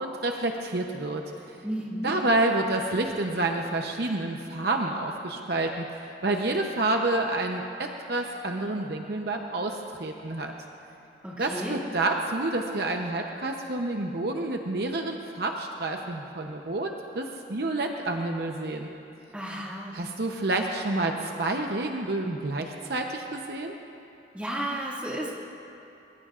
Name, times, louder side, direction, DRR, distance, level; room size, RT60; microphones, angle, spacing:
voice 1, 0.0-1.6 2.0-5.9 6.2-10.5 11.4-18.9 19.9-23.8, right 2 dB, 55° right, 2 dB, 0.8 m, -29 dB
voice 2, 1.6-2.1 11.2-11.8 19.3-20.1 24.3-25.4, right 1 dB, 5° right, -5 dB, 2.1 m, -33 dB
23.5 x 20.0 x 2.5 m, 2.8 s
head